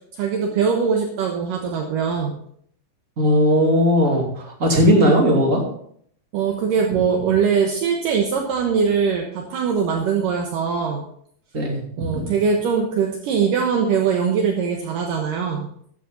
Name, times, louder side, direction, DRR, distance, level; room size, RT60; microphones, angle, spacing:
voice 1, 0.1-2.4 6.3-11.0 12.0-15.7, right 6 dB, 70° right, 1 dB, 2.6 m, -21 dB
voice 2, 3.2-4.3 4.6-5.6 11.5-11.8 12.1-12.2, equal, 25° right, 0 dB, 2.5 m, -17 dB
14.0 x 10.0 x 4.0 m, 0.65 s
omnidirectional pair, 4.2 m